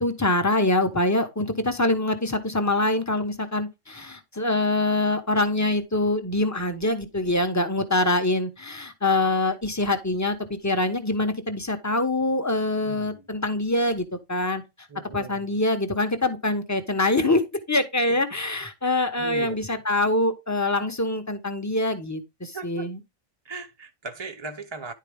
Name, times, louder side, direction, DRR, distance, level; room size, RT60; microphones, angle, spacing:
voice 1, 0.0-14.6 15.1-23.0, left 2 dB, 15° left, 1.1 m, -24 dB
voice 2, 12.8-13.3 14.9-15.6 18.1-18.2 19.2-19.8 22.5-22.9 23.4-24.9, right 3 dB, 25° right, 0.8 m, -38 dB
10.5 x 4.7 x 3.5 m
omnidirectional pair, 1.4 m